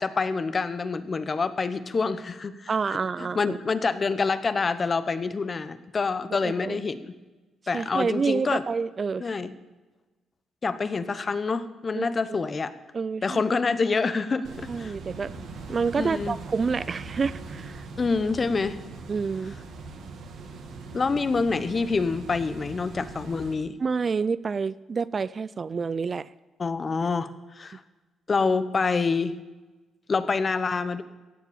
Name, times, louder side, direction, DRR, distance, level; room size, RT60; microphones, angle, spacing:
voice 1, 0.0-2.7 3.2-7.1 7.7-8.6 9.2-9.5 10.6-12.7 13.2-14.9 15.9-16.4 18.0-18.8 20.9-23.8 26.6-27.3 27.6-27.8 28.3-29.3 30.1-31.0, left 4 dB, 35° left, 13 dB, 0.9 m, -26 dB
voice 2, 2.7-3.6 6.4-6.8 7.7-9.3 11.9-12.1 12.9-13.4 14.7-15.4 15.7-17.9 19.1-19.6 23.8-26.3, right 5 dB, 40° right, 17 dB, 0.3 m, -28 dB
sound 1, 14.4-23.5, right 3 dB, 75° right, 2.2 m, -41 dB
16.0 x 7.4 x 7.1 m, 1.2 s
cardioid pair, 90°, 0 cm